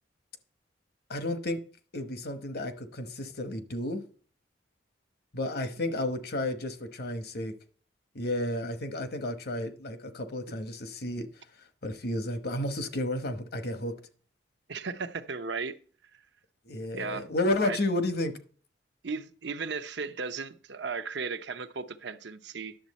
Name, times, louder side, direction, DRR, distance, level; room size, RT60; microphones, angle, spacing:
voice 1, 1.1-1.6 1.9-4.0 5.3-7.5 8.1-11.3 11.8-13.9 16.7-18.4, left 1 dB, 60° left, 1.1 m, -32 dB
voice 2, 14.7-15.7 16.9-17.3 17.6-17.8 19.0-22.8, right 5 dB, 70° right, 0.7 m, -35 dB
10.5 x 7.1 x 4.2 m
head